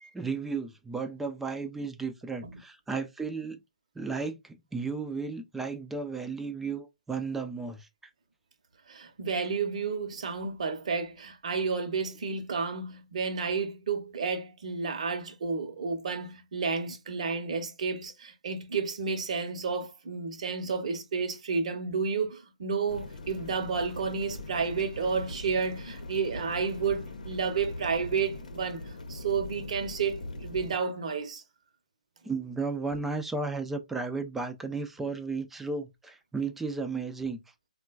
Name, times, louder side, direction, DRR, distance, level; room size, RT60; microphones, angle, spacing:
voice 1, 0.1-3.6 4.0-7.9 32.2-37.4, right 4 dB, 5° right, 0.3 m, -34 dB
voice 2, 8.9-28.8 29.1-31.4, right 5 dB, 55° right, 0.7 m, -31 dB
sound 1, 22.9-30.8, left 2 dB, 80° left, 0.7 m, -41 dB
3.7 x 2.2 x 2.3 m
hypercardioid pair, 140°, 4 cm